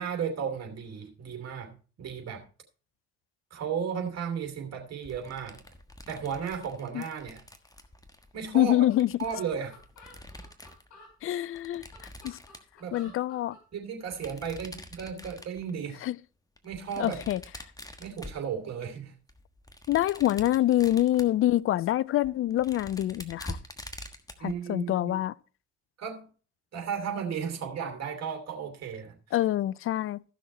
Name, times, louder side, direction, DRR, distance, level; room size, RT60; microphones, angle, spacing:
voice 1, 0.0-2.4 3.5-5.6 6.1-7.4 8.3-8.7 9.2-9.8 12.8-13.0 13.7-16.0 16.6-17.2 18.0-19.1 24.4-25.1 26.0-26.2 26.7-29.1, right 7 dB, 50° right, 2.9 m, -34 dB
sound 1, 5.0-10.9 11.6-13.1 14.1-15.8 16.6-18.9 19.3-21.4 21.9-22.0 22.2-24.5, left 1 dB, 10° left, 1.4 m, -46 dB
voice 2, 8.5-9.1 11.2-12.4 12.9-13.6 16.0-16.2 17.0-17.4 19.9-23.6 24.4-25.3 29.3-30.2, left 13 dB, 40° left, 0.4 m, -26 dB
sound 2, 8.6-8.7 8.9-9.0 9.2-11.1 11.7-13.6, left 3 dB, 60° left, 4.9 m, -52 dB
14.5 x 6.2 x 4.3 m
hypercardioid pair, 55°, 34 cm